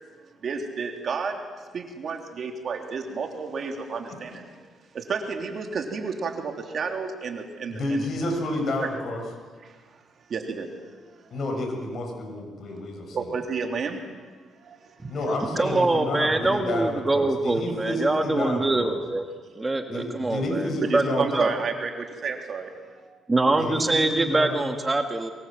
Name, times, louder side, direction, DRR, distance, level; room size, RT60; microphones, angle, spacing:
voice 1, 0.4-4.7 4.9-8.1 8.8-8.9 9.6-10.0 10.3-10.7 11.1-11.3 13.1-14.3 14.6-15.4 20.8-23.1, right 5 dB, 55° right, 4 dB, 3.3 m, -32 dB
voice 2, 7.7-9.2 11.3-13.3 15.1-19.0 19.9-21.5 23.5-24.8, left 1 dB, 55° left, 2 dB, 7.2 m, -30 dB
voice 3, 15.5-19.3 19.6-21.5 23.3-25.3, right 2 dB, 20° right, 5 dB, 1.8 m, -24 dB
23.5 x 22.5 x 7.7 m, 1.5 s
cardioid pair, 90°, 0 cm